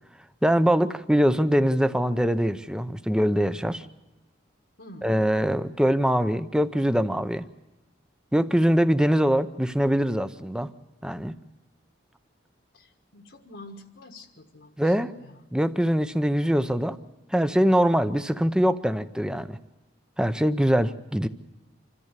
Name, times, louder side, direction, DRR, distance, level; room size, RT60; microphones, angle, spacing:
voice 1, 0.4-3.9 5.0-7.5 8.3-10.7 11.0-11.4 14.8-15.1 15.5-17.0 17.3-19.6 20.2-21.3, equal, 5° right, 11 dB, 0.6 m, -23 dB
voice 2, 4.8-5.2 12.7-15.4, left 1 dB, 70° left, 1 dB, 1.5 m, -47 dB
26.5 x 14.0 x 8.2 m, 1.0 s
head